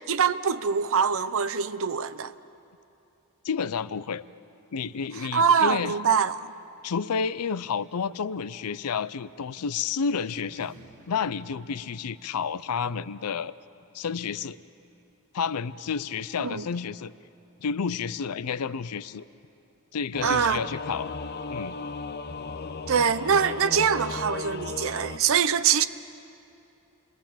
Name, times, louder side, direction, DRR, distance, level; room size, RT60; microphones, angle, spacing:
voice 1, 0.1-2.3 5.3-6.5 16.4-16.6 20.2-20.6 22.9-25.9, right 6 dB, 65° right, 0.7 m, -24 dB
voice 2, 3.4-4.2 4.7-5.9 6.8-10.7 11.1-13.5 13.9-14.6 15.3-17.1 17.6-19.2 19.9-21.1 21.5-21.8, left 6 dB, 80° left, 0.5 m, -30 dB
sound 1, 10.3-15.1, right 1 dB, 40° right, 6.3 m, -56 dB
Singing / Musical instrument, 20.1-25.2, left 4 dB, 45° left, 0.8 m, -35 dB
28.5 x 21.0 x 7.4 m
head